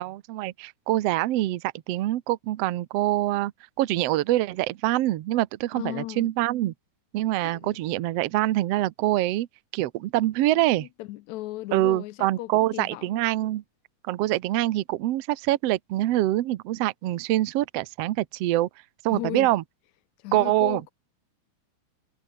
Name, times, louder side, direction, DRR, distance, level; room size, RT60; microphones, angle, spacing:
voice 1, 0.0-3.5 3.8-6.7 7.1-9.5 9.7-10.9 11.7-13.6 14.1-18.7 19.0-19.6 20.3-20.8, right 15 dB, 65° right, 1.7 m, -25 dB
voice 2, 5.8-6.3 7.5-7.7 10.6-13.1 19.1-19.5 20.2-20.9, left 17 dB, 75° left, 1.9 m, -36 dB
omnidirectional pair, 3.4 m